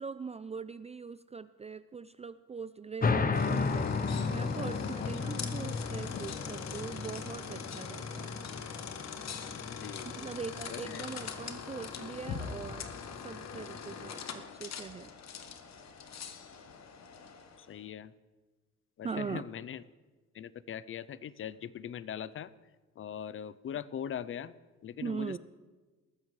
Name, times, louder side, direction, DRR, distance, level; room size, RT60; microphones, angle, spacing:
voice 1, 0.0-3.9 4.3-8.4 10.1-12.9 13.2-15.1 19.0-19.4 25.0-25.4, right 5 dB, 20° right, 13 dB, 0.3 m, -41 dB
sound 1, 3.0-14.1, left 4 dB, 30° left, 0.9 m, -35 dB
sound 2, 3.3-17.7, left 7 dB, 60° left, 1.2 m, -42 dB
voice 2, 9.7-10.1 10.7-11.0 13.5-13.7 17.6-18.1 19.0-19.8 20.3-22.5 23.0-24.5 24.8-25.4, left 9 dB, 45° left, 18 dB, 0.6 m, -41 dB
20.0 x 14.0 x 3.2 m, 1.3 s
cardioid pair, 90°, 30 cm